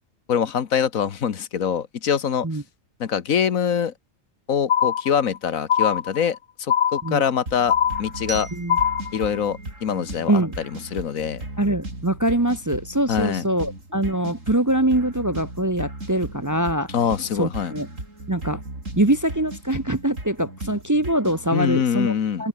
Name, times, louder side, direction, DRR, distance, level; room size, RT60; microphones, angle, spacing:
voice 1, 0.3-2.5 3.0-3.9 4.5-8.5 9.1-10.4 10.9-11.4 13.1-13.4 16.9-17.7 21.5-22.4, left 8 dB, 85° left, 1.7 m, -24 dB
sound 1, 4.7-5.4 5.7-6.4 6.7-7.4 7.7-8.4 8.7-9.4, left 9 dB, 65° left, 1.2 m, -22 dB
sound 2, 7.5-21.5, right 2 dB, 70° right, 6.7 m, -37 dB
Glockenspiel, 8.3-11.1, right 2 dB, 45° right, 4.0 m, -42 dB
voice 2, 11.6-16.9 17.4-17.9 18.3-18.6 19.0-22.1 22.4-22.5, right 1 dB, 15° right, 0.7 m, -23 dB
open air
omnidirectional pair, 1.4 m